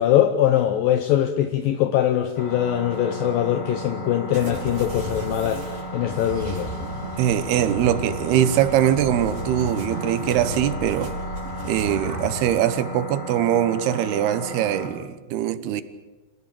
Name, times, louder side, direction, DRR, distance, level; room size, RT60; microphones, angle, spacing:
voice 1, 0.0-6.7, left 11 dB, 75° left, 8 dB, 2.1 m, -22 dB
sound 1, 2.4-14.9, equal, 35° left, 4.1 m, -35 dB
sound 2, 4.3-12.3, right 1 dB, 55° right, 5.8 m, -34 dB
voice 2, 7.2-11.1 11.6-15.8, right 11 dB, 70° right, 13 dB, 2.8 m, -22 dB
26.5 x 17.5 x 8.6 m, 1.2 s
omnidirectional pair, 5.2 m